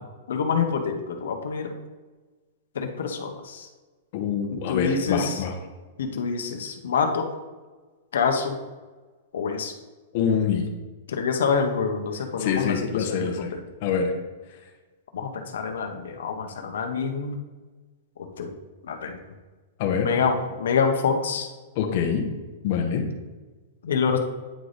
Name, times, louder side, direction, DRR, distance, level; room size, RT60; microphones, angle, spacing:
voice 1, 0.3-1.7 2.7-3.7 4.5-5.4 6.0-7.3 8.1-8.6 9.3-9.7 11.1-13.4 15.1-17.4 18.2-18.5 18.8-19.2 20.0-21.5 23.8-24.2, left 5 dB, 85° left, 5 dB, 0.8 m, -26 dB
voice 2, 4.1-5.5 10.1-10.7 12.4-13.5 13.8-14.1 19.8-20.1 21.8-22.2 22.6-23.0, left 7 dB, 40° left, 3 dB, 0.8 m, -25 dB
9.0 x 3.2 x 4.0 m, 1.3 s
supercardioid pair, 175°, 0 cm